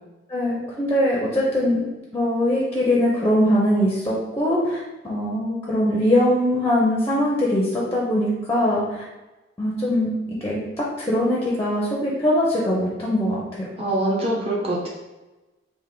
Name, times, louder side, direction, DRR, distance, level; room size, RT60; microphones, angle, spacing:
voice 1, 0.3-1.9 2.1-4.8 5.0-9.0 9.6-10.6 11.0-13.4, left 1 dB, 15° left, -5 dB, 0.6 m, -21 dB
voice 2, 13.8-14.9, right 1 dB, 30° right, -4 dB, 0.9 m, -24 dB
3.3 x 2.5 x 3.7 m, 1.1 s
head